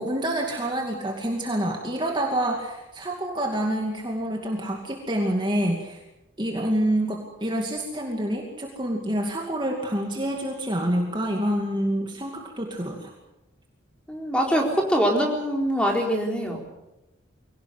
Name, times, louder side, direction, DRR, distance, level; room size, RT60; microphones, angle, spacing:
voice 1, 0.0-6.0 6.4-13.1, right 1 dB, 25° right, 1 dB, 2.5 m, -27 dB
voice 2, 14.1-16.6, equal, 5° left, 0 dB, 4.2 m, -23 dB
23.5 x 18.0 x 8.0 m, 0.97 s
head